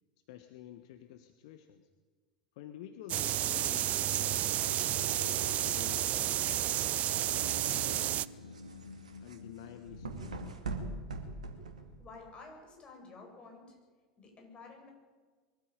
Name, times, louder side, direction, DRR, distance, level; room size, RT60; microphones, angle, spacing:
voice 1, 0.3-1.9 2.5-5.4 5.6-7.2 7.6-8.3 9.2-10.5, left 10 dB, 60° left, 7 dB, 1.4 m, -50 dB
sound 1, 3.1-8.3, right 13 dB, 40° right, 0.5 m, -31 dB
sound 2, 4.1-10.5, left 3 dB, 80° left, 1.1 m, -49 dB
sound 3, 8.2-12.3, right 3 dB, 75° right, 2.4 m, -43 dB
voice 2, 12.0-13.8 14.2-14.9, left 3 dB, 30° left, 1 dB, 7.6 m, -51 dB
23.0 x 14.5 x 9.0 m, 1.4 s
figure-of-eight pair, 80°, 4 cm